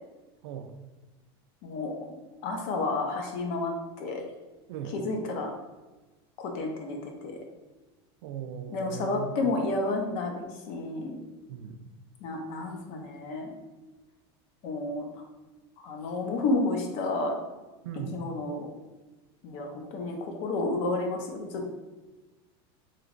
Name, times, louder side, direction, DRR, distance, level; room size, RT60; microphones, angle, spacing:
voice 1, 1.6-1.9 2.4-4.2 4.9-5.5 6.4-7.1 8.7-11.2 12.2-13.5 14.6-15.1 15.8-17.3 18.1-18.7 19.4-21.7, left 2 dB, 50° left, 2 dB, 0.6 m, -31 dB
voice 2, 8.2-9.4 11.5-11.9 17.8-18.2, right 8 dB, 85° right, 8 dB, 0.4 m, -38 dB
3.1 x 2.9 x 2.5 m, 1.2 s
supercardioid pair, 160°, 14 cm